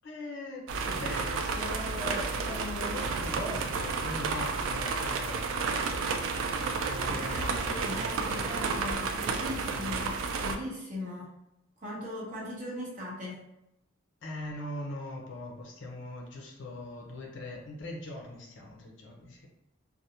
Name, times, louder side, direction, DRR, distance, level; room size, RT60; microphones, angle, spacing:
voice 1, 0.0-5.4 6.9-8.5 14.2-19.5, left 1 dB, 60° left, 0 dB, 0.5 m, -40 dB
sound 1, 0.7-10.6, right 4 dB, 80° right, 0.3 m, -31 dB
voice 2, 7.1-11.3 11.8-13.5, left 1 dB, 40° right, -5 dB, 0.8 m, -39 dB
2.4 x 2.0 x 2.8 m, 0.86 s
head